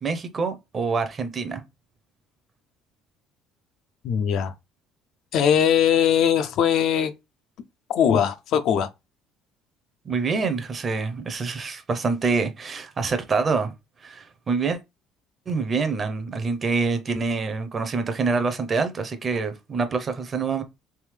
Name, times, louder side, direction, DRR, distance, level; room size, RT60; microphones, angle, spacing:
voice 1, 0.0-1.6 10.1-13.7 14.0-14.8 15.5-20.6, right 4 dB, 25° right, 0.6 m, -26 dB
voice 2, 4.0-4.5 5.3-7.1 7.9-8.9, left 8 dB, 55° left, 0.4 m, -20 dB
3.5 x 3.4 x 3.2 m
cardioid pair, 170°, 0 cm